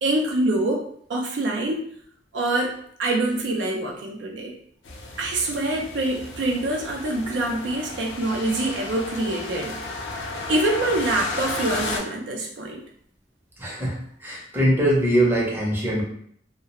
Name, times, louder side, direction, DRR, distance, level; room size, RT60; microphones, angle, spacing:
voice 1, 0.0-1.8 2.3-4.6 5.2-9.7 10.5-12.8, right 2 dB, 70° right, 0 dB, 0.4 m, -25 dB
doppler coche lluvia, 4.8-12.0, left 2 dB, 80° left, 0.5 m, -33 dB
voice 2, 13.6-16.0, right 1 dB, 10° right, -4 dB, 0.6 m, -22 dB
2.3 x 2.0 x 2.8 m, 0.63 s
head